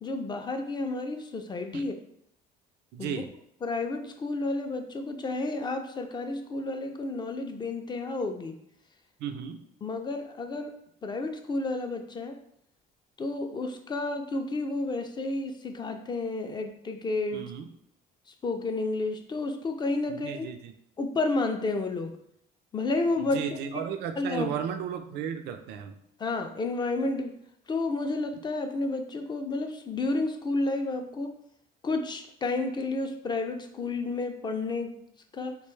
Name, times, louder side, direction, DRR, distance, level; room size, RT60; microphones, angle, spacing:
voice 1, 0.0-2.0 3.0-3.1 3.6-8.6 9.8-10.7 11.0-12.4 13.2-17.4 18.4-20.5 21.0-22.1 22.7-23.4 24.2-24.5 26.2-27.3 27.7-31.3 31.8-34.9 35.3-35.6, left 2 dB, 25° left, 5 dB, 0.3 m, -31 dB
voice 2, 2.9-3.3 9.2-9.6 17.3-17.7 20.1-20.7 23.2-26.0, right 8 dB, 80° right, 6 dB, 0.4 m, -34 dB
3.0 x 2.2 x 3.1 m, 0.72 s
cardioid pair, 110°, 17 cm